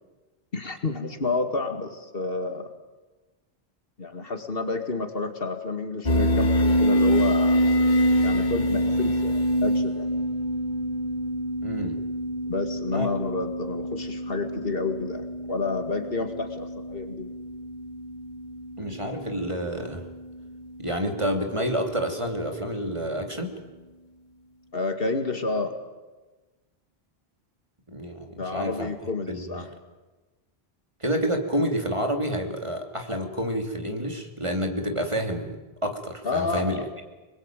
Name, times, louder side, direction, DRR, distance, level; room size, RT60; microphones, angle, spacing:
voice 1, 0.5-2.7 4.0-7.6 8.2-10.1 12.5-17.4 24.7-25.8 28.4-29.7 36.2-36.9, left 3 dB, 65° left, 7 dB, 2.3 m, -30 dB
sound 1, 6.1-21.1, equal, 45° left, 2.1 m, -26 dB
voice 2, 11.6-12.0 12.9-13.1 18.8-20.0 20.8-23.6 27.9-28.9 29.3-29.6 31.0-37.0, equal, 30° right, 4 dB, 2.9 m, -29 dB
26.0 x 21.5 x 9.1 m, 1.2 s
omnidirectional pair, 1.1 m